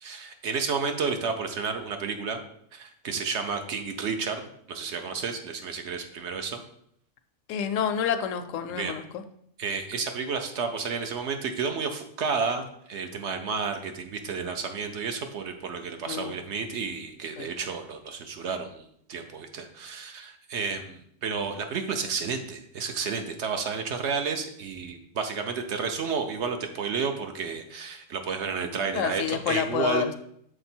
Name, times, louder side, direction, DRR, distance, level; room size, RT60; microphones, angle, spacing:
voice 1, 0.0-2.4 2.7-4.4 4.7-6.6 8.7-9.0 9.6-30.1, right 5 dB, 65° right, 6 dB, 0.9 m, -31 dB
voice 2, 7.5-9.0 16.1-16.4 17.4-17.5 28.9-30.1, left 9 dB, 80° left, 9 dB, 0.9 m, -28 dB
6.6 x 3.9 x 4.3 m, 0.70 s
omnidirectional pair, 1.3 m